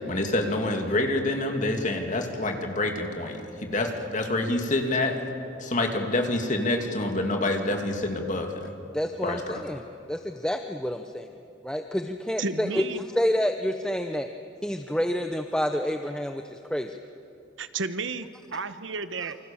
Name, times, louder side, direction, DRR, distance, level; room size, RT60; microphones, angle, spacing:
voice 1, 0.0-5.1 5.6-8.7 9.2-9.6, left 2 dB, 40° left, 3 dB, 2.6 m, -27 dB
voice 2, 8.9-9.8 10.1-11.3 11.6-14.3 14.6-17.0, equal, 5° left, 6 dB, 0.7 m, -28 dB
voice 3, 12.4-13.0 17.6-18.3 18.5-19.4, right 4 dB, 75° right, 11 dB, 1.1 m, -32 dB
28.5 x 25.0 x 7.3 m, 2.7 s
head